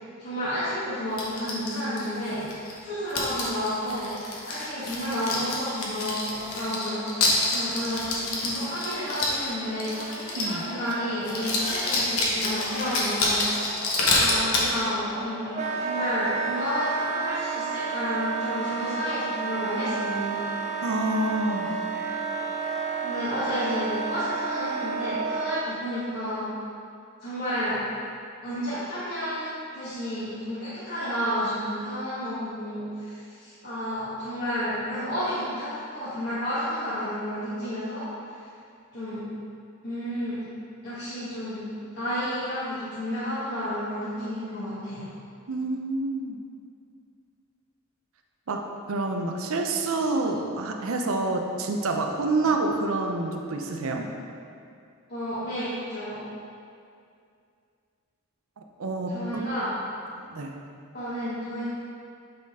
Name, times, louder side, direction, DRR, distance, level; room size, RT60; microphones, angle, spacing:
voice 1, 0.2-2.4 2.8-4.1 4.4-15.5 15.8-20.4 23.0-26.5 27.2-27.8 28.4-38.4 38.9-39.3 39.8-40.4 40.8-41.6 41.9-45.1 55.1-56.2 59.1-59.7 60.9-61.7, equal, 50° left, -13 dB, 1.3 m, -31 dB
sound 1, 1.2-2.8 3.1-10.6 10.9-11.0 11.2-14.7, left 2 dB, 75° left, 1.1 m, -28 dB
Singing, 6.3-23.8, equal, 15° right, 1.1 m, -41 dB
Wind instrument woodwind instrument, 15.5-25.7, right 5 dB, 30° right, 0.4 m, -30 dB
voice 2, 20.8-21.7 45.5-46.4 48.5-54.1 58.6-59.2 60.2-60.5, right 2 dB, 70° right, 3 dB, 0.6 m, -28 dB
8.6 x 4.1 x 3.6 m, 2.4 s
head